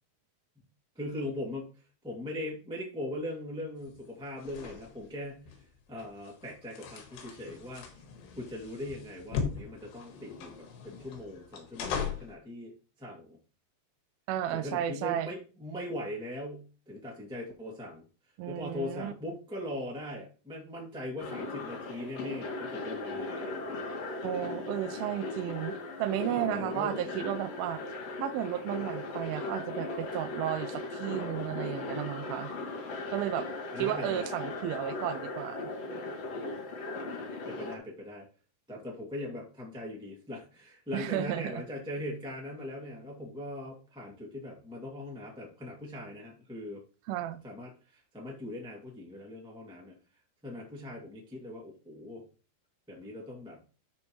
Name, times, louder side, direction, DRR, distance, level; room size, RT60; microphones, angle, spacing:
voice 1, 0.9-7.9 8.3-12.7 13.0-13.4 14.5-18.0 18.4-23.8 26.3-27.0 31.7-32.0 33.7-34.3 37.4-38.3 38.7-46.8 47.4-49.9 50.4-52.2 52.9-53.6, left 1 dB, 5° right, -2 dB, 1.0 m, -40 dB
sound 1, 3.8-12.4, left 6 dB, 85° left, 3.6 m, -40 dB
voice 2, 14.3-15.3 18.4-19.1 24.2-27.8 28.2-32.5 33.1-33.5 33.8-35.7 40.9-41.6 47.1-47.4, right 12 dB, 80° right, 10 dB, 2.2 m, -33 dB
sound 2, 21.2-37.8, left 2 dB, 50° left, 2.4 m, -38 dB
12.5 x 5.3 x 3.1 m, 0.35 s
omnidirectional pair, 4.8 m